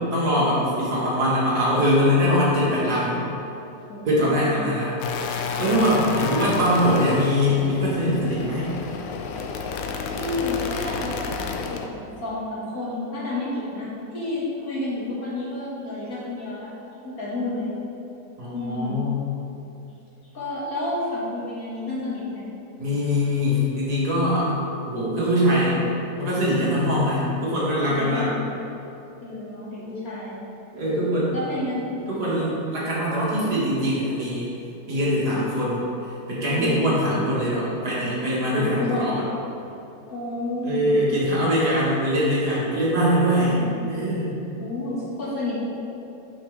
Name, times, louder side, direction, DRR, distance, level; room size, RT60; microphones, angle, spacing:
voice 1, 0.1-3.2 4.0-4.9 5.6-8.7 18.4-19.2 22.8-24.5 24.9-25.8 26.1-28.3 30.7-31.4 32.1-34.5 34.9-35.8 36.3-39.2 40.6-43.6 43.9-44.4, equal, 60° right, -7 dB, 2.3 m, -22 dB
voice 2, 3.9-4.7 10.1-11.2 11.7-16.7 17.0-17.7 18.5-19.0 20.3-22.5 27.9-28.5 29.2-30.4 31.3-31.8 35.2-35.4 36.5-36.8 38.5-39.0 40.1-40.9 43.4-43.8 44.6-45.6, left 2 dB, 55° left, -8 dB, 2.1 m, -30 dB
sound 1, 5.0-11.9, left 5 dB, 85° left, 1.3 m, -30 dB
8.9 x 6.1 x 3.3 m, 2.9 s
omnidirectional pair, 1.9 m